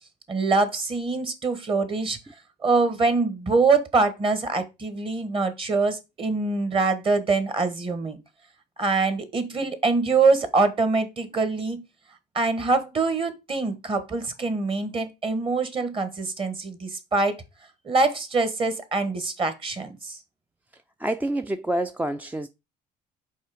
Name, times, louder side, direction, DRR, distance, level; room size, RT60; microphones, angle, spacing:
voice 1, 0.3-2.2 2.6-8.2 8.8-11.8 12.3-17.4 17.8-20.2, right 3 dB, 30° right, 1.4 m, -24 dB
voice 2, 21.0-22.5, right 1 dB, 10° right, 0.4 m, -27 dB
5.4 x 4.2 x 4.9 m
cardioid pair, 110°, 17 cm